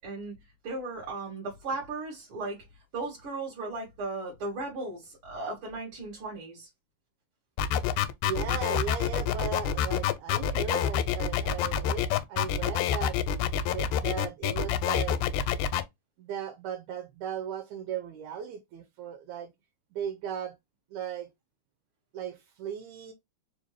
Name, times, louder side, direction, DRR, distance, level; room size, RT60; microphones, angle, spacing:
voice 1, 0.0-0.3 0.6-2.6 2.9-6.7, right 3 dB, 55° right, 1.6 m, -36 dB
sound 1, 7.6-15.8, left 9 dB, 85° left, 2.0 m, -27 dB
voice 2, 8.2-13.2 13.6-15.2 16.2-19.5 19.9-20.6 20.9-21.3 22.1-23.1, right 8 dB, 80° right, 2.0 m, -37 dB
4.5 x 2.5 x 3.1 m
omnidirectional pair, 3.4 m